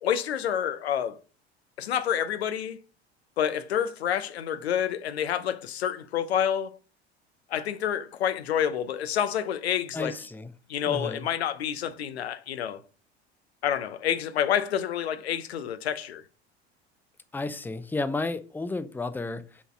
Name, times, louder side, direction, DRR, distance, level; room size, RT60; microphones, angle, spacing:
voice 1, 0.0-1.2 1.8-2.8 3.4-6.8 7.5-10.1 10.7-12.8 13.6-16.2, left 9 dB, 75° left, 0.7 m, -28 dB
voice 2, 9.9-10.5 10.8-11.3 17.3-19.6, left 3 dB, 5° left, 0.7 m, -32 dB
5.9 x 4.0 x 6.0 m
figure-of-eight pair, 70°, 32 cm